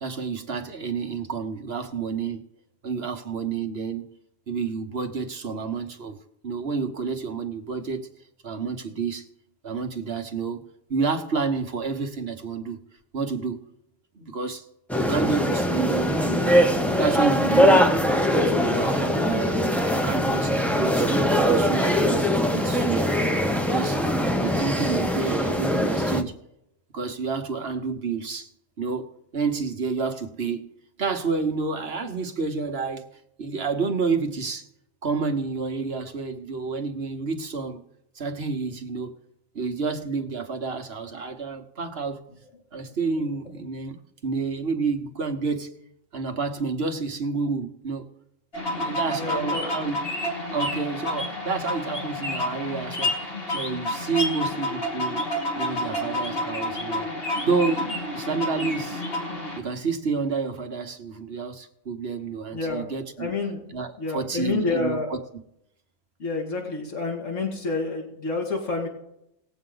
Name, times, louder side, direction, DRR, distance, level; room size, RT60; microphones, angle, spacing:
voice 1, 0.0-2.4 2.8-4.0 4.5-8.1 8.4-9.3 9.6-10.6 10.9-12.8 13.1-13.6 14.2-14.6 15.0-16.7 17.0-17.9 18.3-23.1 23.6-24.0 24.3-26.3 26.9-28.5 28.8-29.1 29.3-30.7 31.0-33.0 33.4-34.7 35.0-37.8 38.1-39.1 39.5-42.2 42.7-44.0 44.2-45.7 46.1-48.1 48.7-50.0 50.5-55.2 55.6-57.1 57.4-59.0 59.6-63.3 63.7-65.2, right 4 dB, 50° right, 5 dB, 1.3 m, -29 dB
sound 1, 14.9-26.2, equal, ahead, 0.6 m, -22 dB
sound 2, 48.5-59.6, left 1 dB, 45° left, 2.6 m, -29 dB
voice 2, 49.1-49.8 62.5-62.9 63.2-63.6 64.0-65.1 66.2-68.9, left 3 dB, 65° left, -1 dB, 2.5 m, -29 dB
19.0 x 7.9 x 3.9 m, 0.79 s
omnidirectional pair, 1.4 m